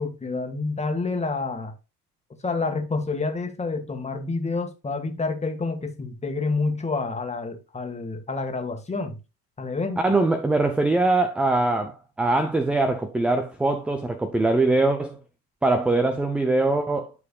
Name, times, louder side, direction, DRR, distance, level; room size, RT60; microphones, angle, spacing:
voice 1, 0.0-1.7 2.4-9.2 9.6-10.0, left 3 dB, 15° left, 1.6 m, -28 dB
voice 2, 10.0-15.2 15.6-17.1, right 2 dB, 5° right, 0.3 m, -22 dB
11.5 x 4.7 x 2.3 m
hypercardioid pair, 75°, 48 cm